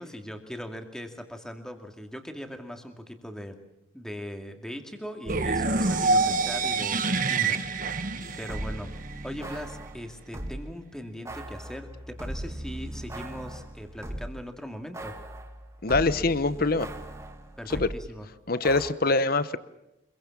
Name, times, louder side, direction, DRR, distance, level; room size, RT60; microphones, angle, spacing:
voice 1, 0.0-3.6 3.9-8.1 8.4-9.0 9.2-15.2 17.6-18.3, equal, 5° left, 5 dB, 2.3 m, -40 dB
sound 1, 5.2-7.0 7.3-10.6 11.2-14.4 14.9-18.0 18.6-18.9, right 1 dB, 15° right, 2.1 m, -39 dB
sound 2, 5.3-9.2, right 3 dB, 40° right, 1.4 m, -26 dB
voice 2, 15.8-16.9 17.7-17.9 18.5-19.6, left 3 dB, 45° left, 15 dB, 0.9 m, -24 dB
26.0 x 22.5 x 7.4 m, 0.91 s
head